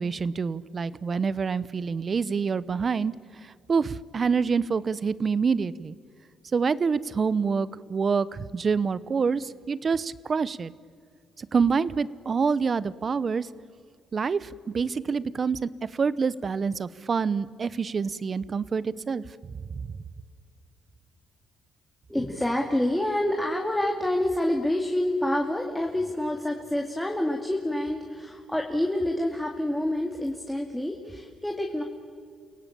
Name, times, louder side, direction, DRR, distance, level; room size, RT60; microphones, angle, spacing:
voice 1, 0.0-3.1 3.4-6.0 6.5-10.7 11.4-13.5 14.1-14.5 14.7-15.7 16.0-19.2 19.7-19.8, right 5 dB, 40° right, 18 dB, 0.9 m, -26 dB
voice 2, 22.1-31.8, left 1 dB, 5° left, 1 dB, 2.4 m, -27 dB
29.5 x 18.0 x 8.7 m, 2.1 s
cardioid pair, 90°, 0 cm